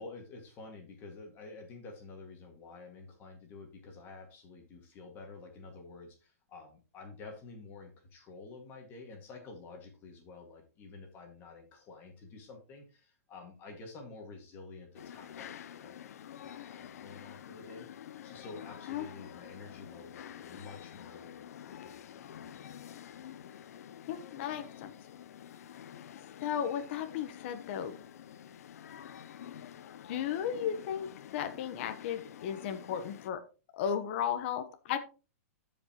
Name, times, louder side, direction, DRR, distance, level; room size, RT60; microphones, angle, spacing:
voice 1, 0.0-16.1 16.4-17.9 18.2-21.5 21.8-22.7, left 3 dB, 25° left, 2 dB, 2.0 m, -50 dB
sound 1, 14.9-33.3, left 10 dB, 75° left, 0.6 m, -48 dB
voice 2, 24.1-24.9 26.4-28.0 30.1-33.4 33.7-35.0, left 8 dB, 45° left, 8 dB, 1.0 m, -35 dB
14.0 x 5.3 x 3.0 m, 0.33 s
hypercardioid pair, 155°, 8 cm